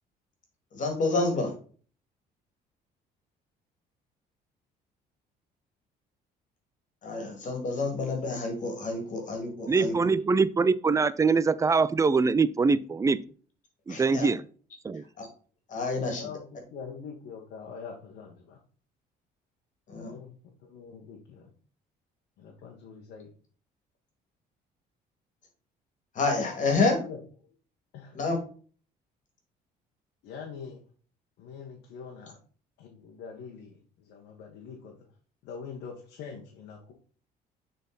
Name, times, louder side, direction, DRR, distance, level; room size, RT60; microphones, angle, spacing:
voice 1, 0.7-1.5 7.0-10.0 13.9-14.3 15.2-15.3 15.7-16.3 19.9-20.1 26.1-27.0 28.1-28.4, left 3 dB, 50° left, 2.2 m, -28 dB
voice 2, 9.7-13.2 13.9-14.4 14.8-15.0, right 4 dB, 20° right, 0.4 m, -23 dB
voice 3, 16.0-18.6 19.9-20.3 20.7-21.5 22.4-23.3 26.9-27.2 27.9-28.1 30.2-30.8 31.4-32.4 32.8-33.8 34.1-35.0 35.4-36.9, left 6 dB, 85° left, 1.3 m, -43 dB
6.9 x 4.1 x 4.0 m
cardioid pair, 110°, 17 cm